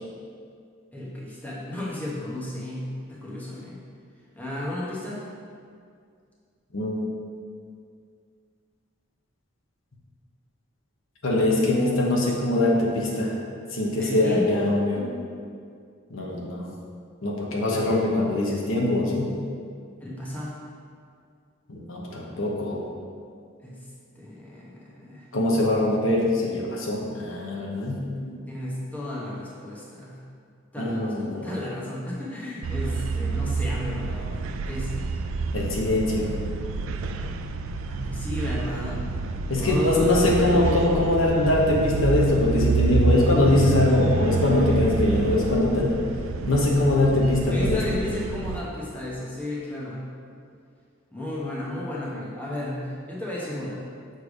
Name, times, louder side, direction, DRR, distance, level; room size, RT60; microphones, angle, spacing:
voice 1, 0.9-3.8 4.3-5.2 14.0-14.7 20.0-20.6 23.6-23.8 24.1-25.3 28.5-30.2 30.7-34.9 37.9-39.0 39.6-40.7 47.5-50.1 51.1-53.8, left 2 dB, 10° left, -6 dB, 1.0 m, -33 dB
voice 2, 6.7-7.1 11.2-13.4 13.7-15.0 16.1-16.7 17.2-19.3 21.7-22.8 25.3-28.3 30.8-31.5 35.5-36.3 39.5-46.0 46.5-47.8, left 2 dB, 85° left, -2 dB, 1.0 m, -22 dB
sound 1, 32.6-48.6, right 4 dB, 85° right, 0.3 m, -28 dB
6.7 x 3.3 x 4.9 m, 2.2 s
head